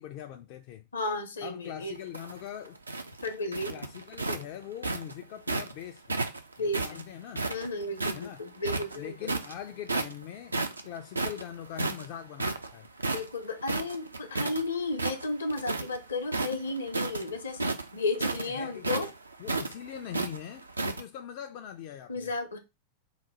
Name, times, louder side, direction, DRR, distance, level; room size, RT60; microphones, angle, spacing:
voice 1, 0.0-0.9 1.4-2.8 3.7-6.2 6.6-7.5 8.1-8.4 9.0-10.6 10.8-12.9 18.3-19.1 19.4-22.3, left 10 dB, 45° left, 0.4 m, -42 dB
voice 2, 0.9-1.9 3.2-3.8 6.6-7.0 7.5-9.4 13.1-19.1 22.1-22.6, left 2 dB, 70° left, 0.8 m, -33 dB
sound 1, 2.0-5.7 6.1-8.3 8.6-9.5 9.9-10.2 10.5-14.6 14.9-16.0 16.3-21.0, right 3 dB, 80° right, 0.4 m, -32 dB
3.9 x 2.2 x 4.3 m
figure-of-eight pair, 90°, 0 cm